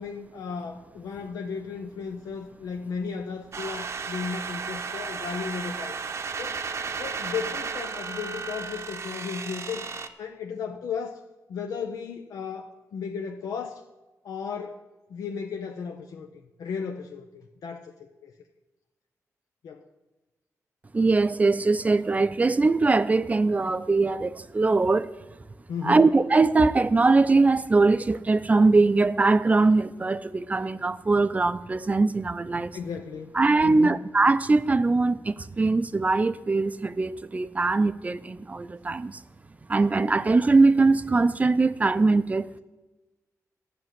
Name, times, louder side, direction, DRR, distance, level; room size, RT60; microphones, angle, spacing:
voice 1, 0.0-6.0 6.4-6.6 7.0-9.8 10.2-11.2 11.5-13.8 14.2-14.8 15.1-18.3 19.6-19.8 25.7-26.1 32.7-33.3 33.6-34.0, left 6 dB, 85° left, 0.8 m, -35 dB
sound 1, 3.5-10.1, right 5 dB, 55° right, 0.8 m, -34 dB
voice 2, 20.9-25.1 25.8-32.8 33.3-39.2 39.7-42.5, right 3 dB, 25° right, 0.5 m, -21 dB
11.5 x 6.2 x 9.2 m
wide cardioid pair, 115°, 6 cm